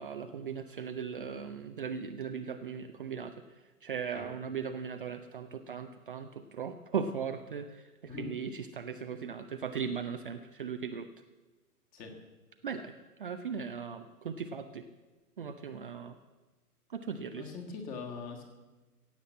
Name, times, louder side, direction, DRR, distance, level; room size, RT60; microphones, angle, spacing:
voice 1, 0.0-3.3 3.8-11.1 12.6-12.9 13.2-14.8 15.4-16.2 16.9-17.5, right 6 dB, 35° right, 7 dB, 0.6 m, -38 dB
voice 2, 17.3-18.4, left 5 dB, 20° left, 3 dB, 1.7 m, -41 dB
16.0 x 7.9 x 7.5 m, 1.2 s
figure-of-eight pair, 125°, 47 cm